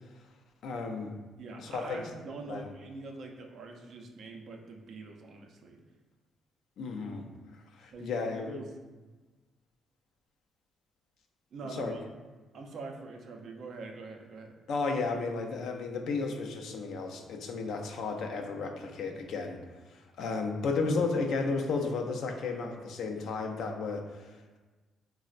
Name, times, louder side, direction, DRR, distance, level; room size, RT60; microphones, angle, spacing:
voice 1, 0.6-1.1 1.6-2.0 2.5-2.7 6.8-7.2 7.7-8.6 11.7-11.9 14.7-19.6 19.9-24.6, left 4 dB, 75° left, 3 dB, 0.4 m, -33 dB
voice 2, 1.4-5.8 7.9-8.7 11.5-12.0 12.5-14.6, right 3 dB, 65° right, 3 dB, 0.4 m, -44 dB
4.0 x 2.0 x 2.4 m, 1.3 s
cardioid pair, 90°, 0 cm